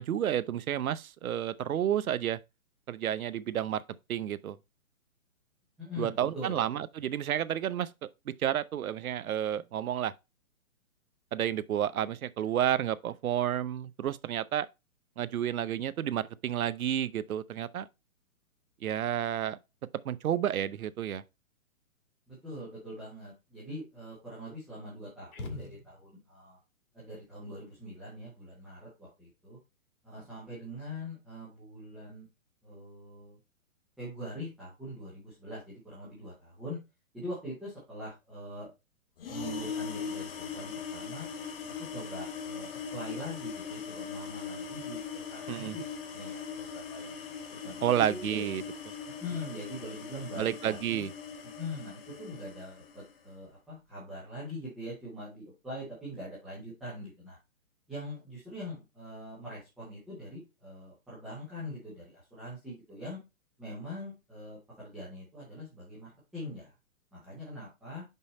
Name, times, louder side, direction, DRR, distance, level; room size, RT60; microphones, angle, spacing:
voice 1, 0.0-2.4 2.9-3.8 4.1-4.6 6.0-7.9 8.3-10.1 11.3-14.7 15.2-17.9 18.8-19.6 20.0-21.2 45.5-45.8 47.8-48.6 50.4-51.1, right 10 dB, 85° right, 0.7 m, -30 dB
voice 2, 5.8-6.6 22.3-26.6 26.9-29.6 30.0-32.3 32.6-33.4 34.0-36.8 37.1-38.7 39.3-41.3 41.9-47.2 47.5-48.4 49.2-51.1 51.6-57.4 57.9-63.2 63.6-66.7 67.1-68.0, left 1 dB, ahead, 0.6 m, -43 dB
sound 1, 25.3-26.3, left 3 dB, 90° left, 1.7 m, -43 dB
sound 2, 39.2-53.1, left 6 dB, 45° left, 1.2 m, -40 dB
5.5 x 5.3 x 4.1 m
hypercardioid pair, 165°, 42 cm